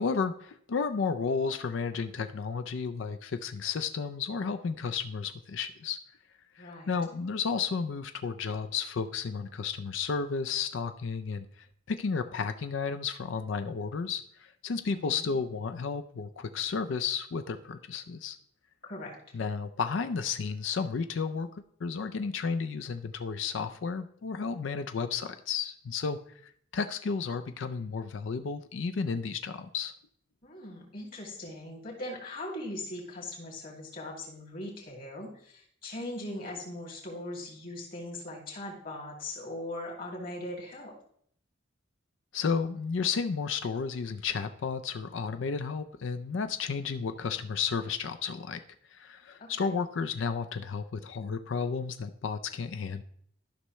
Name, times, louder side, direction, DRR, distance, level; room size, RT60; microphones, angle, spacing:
voice 1, 0.0-6.0 6.6-18.4 19.3-26.2 26.4-29.9 42.3-48.6 48.9-53.0, left 5 dB, 75° left, 10 dB, 0.4 m, -32 dB
voice 2, 6.6-6.9 14.9-15.3 18.8-19.2 30.4-40.9 49.4-49.7, left 1 dB, 50° left, -1 dB, 2.4 m, -40 dB
13.0 x 5.5 x 3.1 m, 0.64 s
head